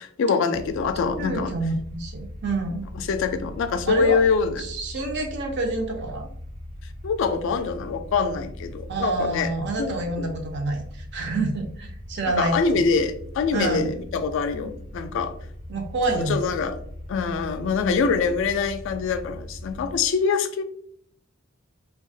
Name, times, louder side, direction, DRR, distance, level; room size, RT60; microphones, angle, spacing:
voice 1, 0.0-1.5 3.0-4.6 7.0-9.5 9.8-10.3 12.3-15.3 16.1-16.8 17.1-20.6, left 5 dB, 60° left, 0.3 m, -24 dB
sound 1, 0.5-20.0, left 1 dB, 75° right, 1.1 m, -39 dB
voice 2, 1.2-2.9 3.8-4.2 4.6-6.3 8.9-12.6 13.5-13.9 15.7-16.4, right 3 dB, 55° right, 0.5 m, -27 dB
2.7 x 2.2 x 2.6 m
head